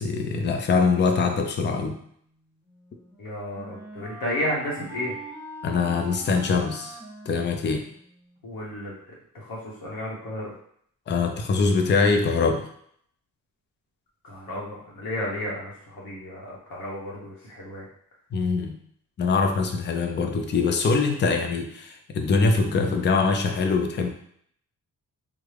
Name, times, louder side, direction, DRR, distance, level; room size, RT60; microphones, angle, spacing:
voice 1, 0.0-2.0 5.6-7.0 7.3-7.8 11.1-12.7 18.3-18.7 19.2-24.1, left 4 dB, 30° left, 4 dB, 0.4 m, -23 dB
Wind instrument woodwind instrument, 2.6-8.4, right 3 dB, 10° right, 1.0 m, -43 dB
voice 2, 3.2-5.1 8.4-10.5 14.2-17.9, left 1 dB, 80° left, -4 dB, 1.1 m, -33 dB
3.5 x 2.1 x 3.3 m, 0.65 s
wide cardioid pair, 125°, 35 cm